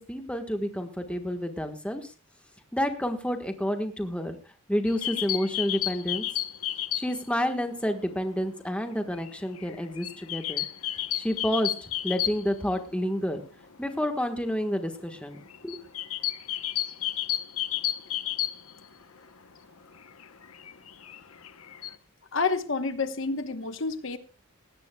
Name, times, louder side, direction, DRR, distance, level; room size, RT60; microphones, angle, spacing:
voice 1, 0.0-2.1 2.7-4.4 4.7-6.2 6.9-10.7 11.2-11.7 12.0-13.4 13.8-15.4 15.6-15.8, equal, 5° left, 5 dB, 1.4 m, -29 dB
sound 1, 4.9-7.3 7.6-7.7 8.0-12.9 13.2-13.3 13.5-13.7 14.2-19.3 19.7-22.0, left 13 dB, 85° left, 0.9 m, -32 dB
voice 2, 22.3-24.2, left 4 dB, 60° left, 9 dB, 1.1 m, -29 dB
18.5 x 16.5 x 2.3 m, 0.34 s
head